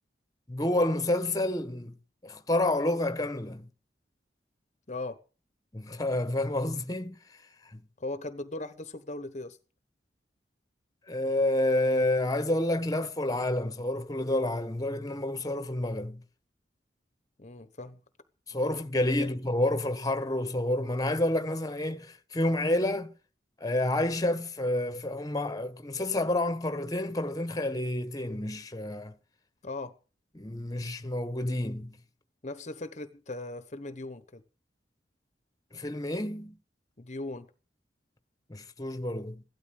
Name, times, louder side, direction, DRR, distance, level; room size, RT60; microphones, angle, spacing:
voice 1, 0.5-1.9 2.2-3.7 5.7-7.2 7.7-7.8 11.1-16.2 18.5-23.1 23.6-29.1 30.3-32.0 35.7-36.6 38.5-39.4, left 1 dB, 20° left, 1.3 m, -29 dB
voice 2, 4.9-5.2 8.0-9.6 17.4-18.0 19.2-19.3 29.6-29.9 32.4-34.4 37.0-37.5, left 2 dB, 40° left, 1.0 m, -38 dB
16.5 x 12.5 x 6.5 m
head